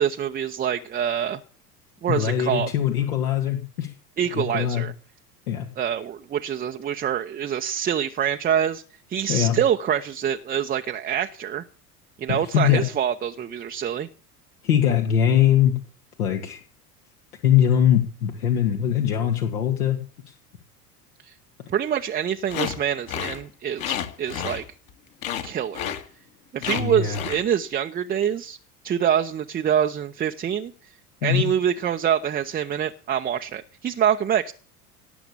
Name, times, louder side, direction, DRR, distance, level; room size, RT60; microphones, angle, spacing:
voice 1, 0.0-1.4 2.0-2.7 4.2-4.9 5.8-8.8 9.1-11.6 12.2-14.1 21.2-21.3 21.7-24.6 25.4-25.9 26.5-28.6 28.8-30.7 31.2-34.5, right 9 dB, 20° right, 6 dB, 0.8 m, -25 dB
voice 2, 2.1-3.9 4.3-4.9 5.5-5.7 9.3-9.6 12.3-12.9 14.6-15.7 16.2-16.6 17.4-20.0 20.3-20.4 26.8-27.3 31.2-31.4, left 10 dB, 65° left, 3 dB, 2.1 m, -21 dB
sound 1, 22.5-22.8 23.1-23.4 23.8-24.9 25.2-25.5 25.7-26.0 26.6-26.8 27.1-27.4, left 10 dB, 45° left, 2.2 m, -30 dB
18.5 x 7.0 x 8.6 m, 0.40 s
figure-of-eight pair, 75°, 47 cm